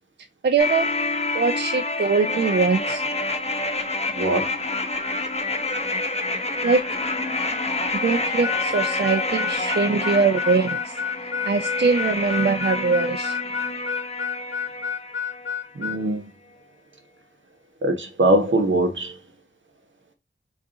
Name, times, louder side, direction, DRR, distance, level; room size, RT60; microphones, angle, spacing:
voice 1, 0.4-0.9 1.3-3.0 6.6-6.8 8.0-11.0 11.4-13.3, right 4 dB, 60° right, 0.4 m, -22 dB
sound 1, 0.6-15.6 15.9-16.0, left 2 dB, 30° left, 0.7 m, -28 dB
voice 2, 4.1-4.5 15.7-16.3 17.8-19.2, right 1 dB, 80° right, 0.9 m, -22 dB
Harmonica, 8.4-16.0, left 7 dB, 70° left, 0.4 m, -30 dB
3.9 x 2.4 x 3.7 m
wide cardioid pair, 40°, 20 cm